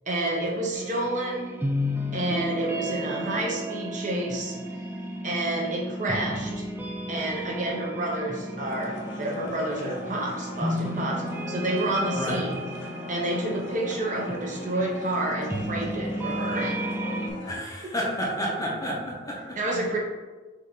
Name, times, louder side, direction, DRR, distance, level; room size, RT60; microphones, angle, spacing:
voice 1, 0.1-1.6 2.1-4.6 5.2-6.6 7.1-12.6 13.1-16.8 19.6-20.0, right 1 dB, 40° right, -2 dB, 0.8 m, -29 dB
sound 1, 0.7-17.3, equal, 10° right, 0.3 m, -33 dB
sound 2, 8.6-17.6, left 2 dB, 70° left, 0.7 m, -41 dB
voice 2, 17.4-19.6, equal, 15° left, -3 dB, 0.8 m, -30 dB
5.5 x 2.5 x 3.8 m, 1.3 s
head